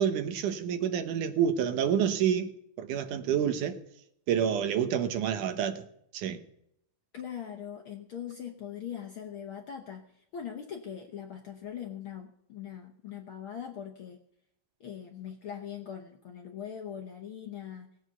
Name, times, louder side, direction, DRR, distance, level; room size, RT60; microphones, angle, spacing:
voice 1, 0.0-2.5 2.8-3.8 4.3-5.8 6.1-6.4, right 8 dB, 80° right, 2.5 m, -28 dB
voice 2, 7.1-10.0 10.3-14.2 14.8-17.9, left 9 dB, 60° left, 1.4 m, -41 dB
18.0 x 7.9 x 6.8 m
omnidirectional pair, 3.6 m